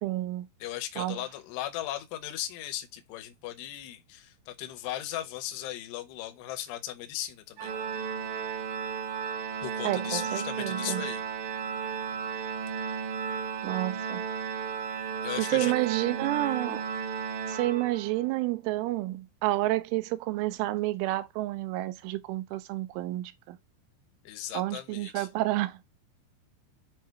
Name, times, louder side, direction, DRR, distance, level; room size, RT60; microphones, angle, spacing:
voice 1, 0.0-0.5 1.0-1.2 9.8-11.1 13.6-14.2 15.4-16.8 17.5-23.6 24.5-25.8, right 17 dB, 90° right, 3.1 m, -30 dB
voice 2, 0.6-7.7 9.6-11.2 15.2-15.7 24.2-25.3, left 13 dB, 75° left, 2.5 m, -37 dB
Organ, 7.6-18.3, right 6 dB, 75° right, 3.1 m, -34 dB
7.6 x 2.8 x 4.5 m
omnidirectional pair, 5.5 m